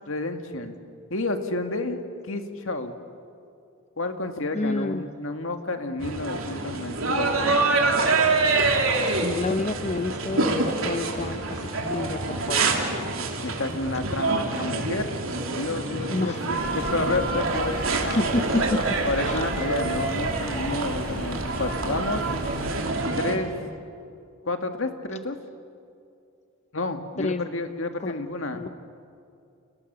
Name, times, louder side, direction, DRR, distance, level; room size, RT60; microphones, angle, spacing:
voice 1, 0.1-0.8 1.1-2.0 2.3-2.9 4.0-7.3 13.4-15.1 15.5-17.8 18.0-18.2 19.1-22.2 23.2-23.5 24.5-25.4 26.7-28.6, left 2 dB, 65° left, 6 dB, 2.0 m, -30 dB
voice 2, 4.5-5.0 9.1-12.9 16.1-16.4 18.1-19.0 19.2-19.4 27.2-27.5 28.0-28.2 28.5-28.7, left 2 dB, 35° left, 9 dB, 0.7 m, -29 dB
sound 1, 6.0-23.4, right 3 dB, 75° right, 3.1 m, -26 dB
sound 2, 16.6-22.8, equal, 5° left, 4.2 m, -38 dB
30.0 x 29.0 x 6.9 m, 2.5 s
head